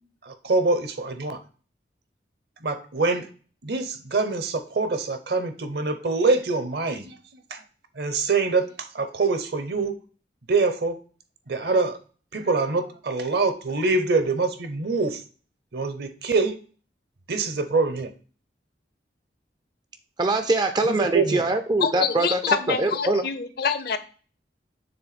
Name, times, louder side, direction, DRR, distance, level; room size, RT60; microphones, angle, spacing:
voice 1, 0.3-1.4 2.6-3.3 3.6-7.2 7.5-7.6 8.0-8.7 8.9-9.9 10.5-11.0 11.5-12.0 12.3-15.2 15.7-16.6 17.3-18.1 20.8-21.4, right 3 dB, 60° right, 10 dB, 0.8 m, -24 dB
voice 2, 20.2-23.2, right 2 dB, 25° right, 10 dB, 0.3 m, -23 dB
voice 3, 21.8-24.0, left 6 dB, 55° left, 11 dB, 0.6 m, -26 dB
7.0 x 3.3 x 4.1 m, 0.40 s
head